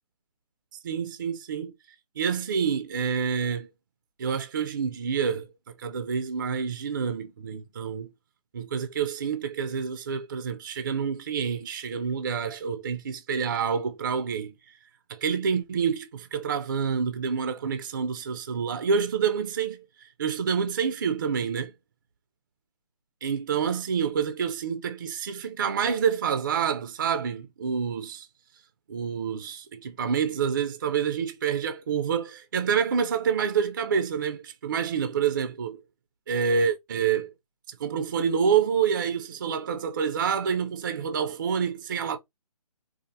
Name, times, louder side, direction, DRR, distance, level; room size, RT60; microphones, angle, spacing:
voice 1, 0.8-1.7 2.2-3.7 4.2-5.5 5.8-8.1 8.5-14.8 15.1-21.7 23.2-28.3 28.9-35.8 36.3-37.3 37.7-42.2, right 6 dB, 30° right, 0.4 m, -28 dB
4.1 x 2.5 x 2.5 m
figure-of-eight pair, 150°, 20 cm